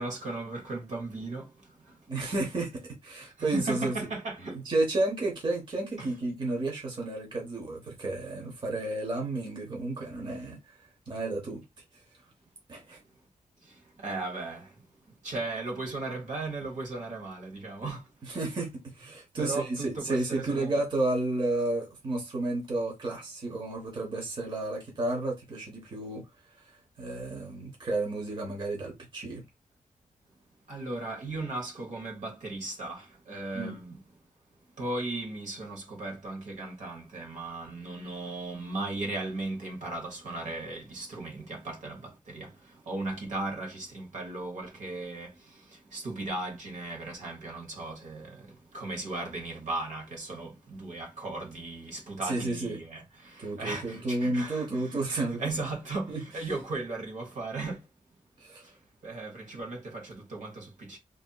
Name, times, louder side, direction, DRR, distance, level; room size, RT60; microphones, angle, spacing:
voice 1, 0.0-1.5 3.4-4.6 6.0-6.1 14.0-14.7 15.2-18.0 19.4-20.7 30.7-34.0 34.8-42.5 42.9-45.3 45.9-48.5 48.7-57.8 59.0-61.0, right 2 dB, 70° right, 1.0 m, -36 dB
voice 2, 2.1-4.1 4.5-11.6 11.9-12.0 12.7-13.0 18.2-26.3 26.5-26.7 27.0-29.4 33.5-33.8 52.2-52.8 53.4-55.4 56.1-56.2 58.4-58.7, right 2 dB, 35° right, 0.8 m, -32 dB
2.7 x 2.5 x 2.2 m
wide cardioid pair, 155°, 13 cm